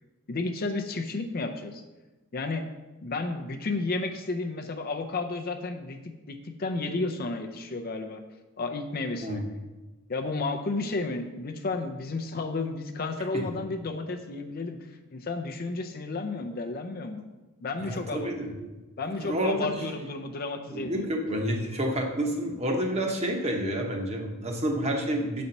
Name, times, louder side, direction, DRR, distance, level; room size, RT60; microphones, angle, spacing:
voice 1, 0.3-1.8 2.3-2.6 3.0-6.0 6.3-8.2 8.6-9.4 10.1-17.2 17.6-18.3 19.0-21.1, left 3 dB, 45° left, 5 dB, 0.5 m, -32 dB
voice 2, 17.8-18.5 19.2-19.7 20.7-25.4, equal, 30° right, 1 dB, 0.9 m, -29 dB
7.0 x 4.2 x 5.3 m, 1.1 s
head